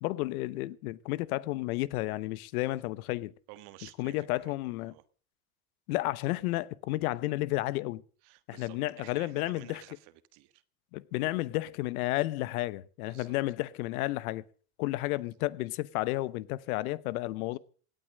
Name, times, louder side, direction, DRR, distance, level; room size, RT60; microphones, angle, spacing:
voice 1, 0.0-3.3 4.0-4.9 5.9-8.0 8.5-9.8 10.9-14.4 14.8-17.6, left 18 dB, 75° left, 1.0 m, -32 dB
voice 2, 3.5-5.0 8.2-10.6 13.0-13.4 15.1-15.5 17.5-17.6, right 17 dB, 60° right, 1.5 m, -53 dB
17.5 x 9.1 x 6.4 m
supercardioid pair, 110°, 45 cm